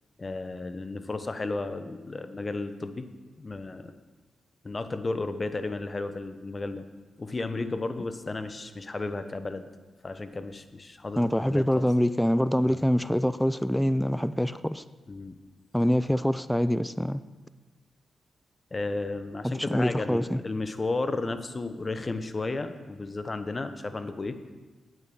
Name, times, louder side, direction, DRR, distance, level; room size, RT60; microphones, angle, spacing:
voice 1, 0.2-3.1 3.4-3.9 4.6-6.8 7.2-9.7 10.0-11.9 12.6-12.8 15.1-15.4 18.7-24.4, left 3 dB, 35° left, 1.0 m, -33 dB
voice 2, 11.2-14.8 15.7-17.2 19.4-20.4, equal, 5° left, 0.4 m, -25 dB
9.4 x 8.8 x 6.4 m
supercardioid pair, 50°, 0 cm